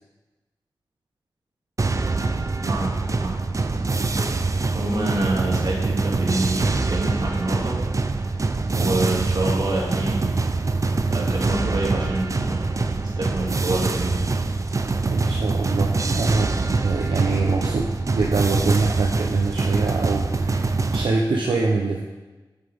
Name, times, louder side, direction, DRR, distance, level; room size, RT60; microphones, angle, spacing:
sound 1, 1.8-21.1, right 3 dB, 40° right, 0.5 m, -24 dB
voice 1, 2.6-2.9 3.2-3.8 4.7-7.8 8.8-10.3 11.1-14.3, right 2 dB, 60° right, -3 dB, 2.4 m, -27 dB
voice 2, 8.7-9.3 15.1-22.0, right 3 dB, 80° right, -1 dB, 0.8 m, -24 dB
9.0 x 7.8 x 3.5 m, 1.2 s
wide cardioid pair, 70°, 8 cm